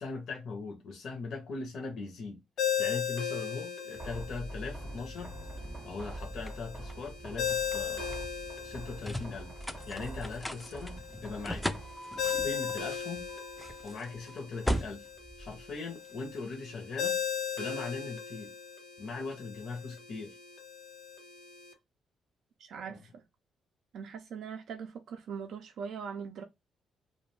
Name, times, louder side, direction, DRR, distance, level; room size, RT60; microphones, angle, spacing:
voice 1, 0.0-5.4 5.8-8.2 8.6-9.5 9.9-11.8 12.4-13.2 13.8-15.1 15.4-17.2 17.6-18.5 19.0-20.4 22.9-23.0, left 4 dB, 65° left, 0.6 m, -40 dB
Ringtone, 2.6-21.7, left 8 dB, 85° left, 0.9 m, -38 dB
sound 1, 4.0-16.3, equal, 5° left, 0.3 m, -40 dB
sound 2, 4.0-12.0, right 2 dB, 25° right, 0.6 m, -46 dB
voice 2, 22.6-23.2 23.9-26.4, right 6 dB, 75° right, 0.4 m, -41 dB
2.4 x 2.1 x 3.0 m
cardioid pair, 90°, 0 cm